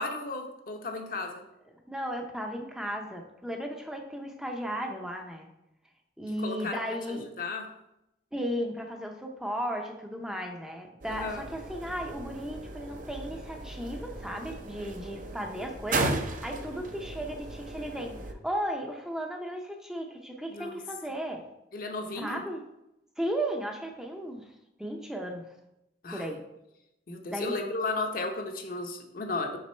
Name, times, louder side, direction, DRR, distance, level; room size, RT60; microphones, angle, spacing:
voice 1, 0.0-1.4 6.4-7.8 11.1-11.4 20.5-20.8 21.7-22.4 26.0-26.3 27.1-29.6, left 3 dB, 55° left, 3 dB, 0.8 m, -34 dB
voice 2, 1.9-5.5 6.2-7.2 8.3-18.1 18.4-21.4 22.1-22.6 23.2-24.4 24.8-25.4 26.1-26.4 27.3-27.6, equal, 5° right, 2 dB, 0.6 m, -35 dB
sound 1, 11.0-18.3, right 2 dB, 50° right, 0.6 m, -36 dB
6.0 x 5.2 x 4.4 m, 0.88 s
head